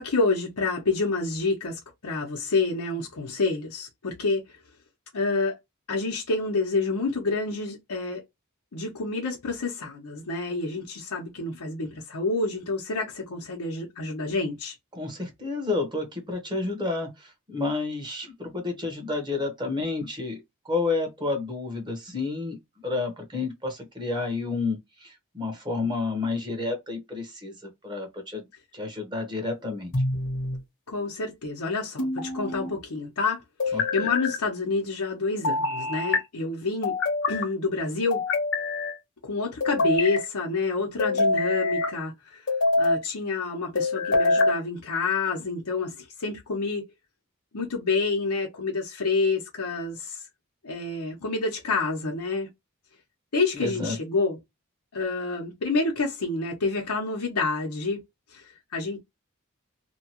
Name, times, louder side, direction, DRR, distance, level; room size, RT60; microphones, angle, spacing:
voice 1, 0.0-4.4 5.1-5.6 5.9-8.2 8.7-14.7 30.9-37.0 37.3-38.2 39.2-42.5 42.8-46.8 47.5-50.2 50.6-52.5 53.3-54.4 54.9-58.0 58.3-59.0, left 3 dB, 85° left, 0.8 m, -28 dB
voice 2, 14.9-20.4 20.6-27.5 27.8-28.5 28.7-29.9 33.7-33.8 53.5-54.0, left 3 dB, 20° right, 0.9 m, -30 dB
sound 1, 29.9-30.6 32.0-32.7 33.6-34.4 35.4-36.2 36.8-37.5 38.1-39.0 39.6-40.2 41.0-41.9 42.5-43.0 43.8-44.6, left 3 dB, 55° left, 0.9 m, -25 dB
2.8 x 2.3 x 2.8 m
head